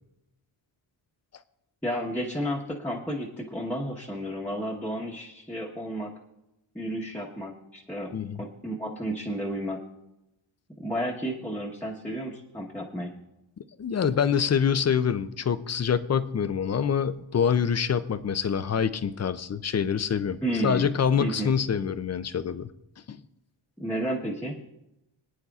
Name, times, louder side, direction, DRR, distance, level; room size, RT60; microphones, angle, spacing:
voice 1, 1.8-6.1 6.7-9.8 10.8-13.1 20.4-20.9 21.2-21.5 23.8-24.6, equal, 5° left, -5 dB, 1.1 m, -32 dB
voice 2, 8.1-8.4 13.8-20.4 20.6-22.7 23.1-23.2, left 7 dB, 35° left, 12 dB, 0.4 m, -25 dB
26.0 x 9.6 x 2.4 m, 0.91 s
wide cardioid pair, 155°, 49 cm